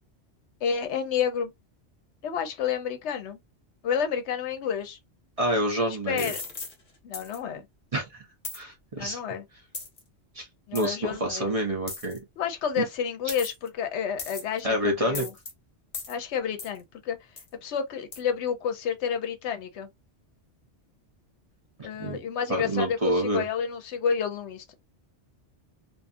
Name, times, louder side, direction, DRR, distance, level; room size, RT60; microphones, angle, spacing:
voice 1, 0.6-1.5 2.2-3.4 3.8-5.0 6.1-6.4 7.0-7.7 8.9-9.4 10.7-11.6 12.4-15.3 16.1-17.2 17.6-19.9 21.8-24.7, left 7 dB, 75° left, 0.9 m, -30 dB
voice 2, 5.4-6.3 7.9-8.0 8.5-9.2 10.3-10.5 10.7-12.2 12.8-12.9 14.6-15.3 21.9-22.2 22.5-23.4, right 1 dB, 35° right, 0.7 m, -27 dB
sound 1, 6.2-6.7 7.1-7.4 8.4-8.6 9.7-10.0 10.8-10.9 11.9-12.2 13.3-13.7 14.2-14.6 15.1-15.5 15.9-16.2 16.6-16.8 17.4-17.5 18.1-18.2, left 4 dB, 45° left, 0.9 m, -36 dB
2.6 x 2.3 x 2.5 m
omnidirectional pair, 1.2 m